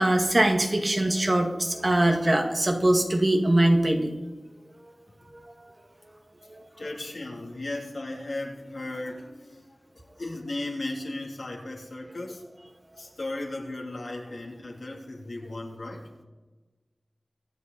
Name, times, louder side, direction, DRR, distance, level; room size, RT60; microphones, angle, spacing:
voice 1, 0.0-4.1 5.3-5.5 6.5-6.6, right 1 dB, 40° right, 2 dB, 2.0 m, -22 dB
voice 2, 6.8-9.7 9.9-12.7 13.0-16.0, left 2 dB, 75° left, -2 dB, 3.0 m, -36 dB
24.0 x 8.3 x 4.1 m, 1.2 s
wide cardioid pair, 55°, 0 cm